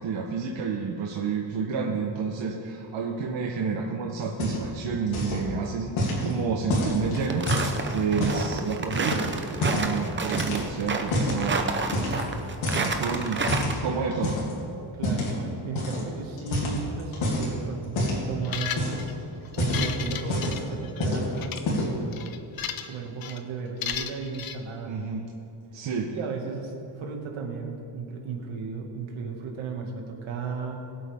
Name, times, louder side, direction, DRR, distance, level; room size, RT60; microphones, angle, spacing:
voice 1, 0.0-9.3 9.6-11.7 12.7-14.4 24.8-25.3 25.7-26.1, right 5 dB, 65° right, 0 dB, 1.1 m, -30 dB
sound 1, 4.2-4.8 5.1-5.5 6.0-8.5 8.9-9.9 10.3-11.4 11.9-12.4 12.6-14.5 15.0-15.3 15.8-16.0 16.4-17.5 18.0-18.3 18.6-19.1 19.5-20.7 21.0-21.3 21.6-22.0, left 1 dB, 85° left, 3.0 m, -28 dB
sound 2, 7.0-13.7, right 4 dB, 25° right, 0.7 m, -30 dB
voice 2, 15.0-19.1 19.6-22.3 22.8-25.0 26.1-30.8, right 5 dB, 85° right, 1 dB, 2.2 m, -34 dB
sound 3, 18.4-19.1 19.5-21.1 21.4-21.6 22.1-22.9 23.2-23.4 23.8-24.6, left 9 dB, 50° left, 0.7 m, -34 dB
21.5 x 8.3 x 3.6 m, 2.8 s
cardioid pair, 170°, 47 cm